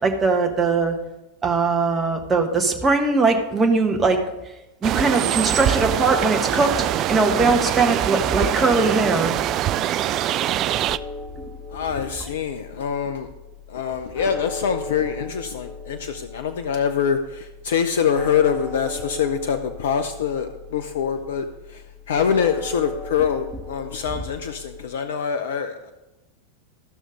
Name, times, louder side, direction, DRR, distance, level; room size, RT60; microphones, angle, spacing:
voice 1, 0.0-0.9 1.4-4.2 4.8-6.7 7.1-9.3, right 3 dB, 15° right, 2 dB, 1.6 m, -20 dB
sound 1, 4.8-11.0, right 11 dB, 35° right, 0.3 m, -23 dB
sound 2, 10.9-24.9, left 3 dB, 10° left, 1.5 m, -37 dB
voice 2, 11.7-13.3 13.7-25.9, left 7 dB, 60° left, 8 dB, 0.6 m, -25 dB
14.0 x 6.3 x 5.2 m, 1.0 s
figure-of-eight pair, 85°, 0 cm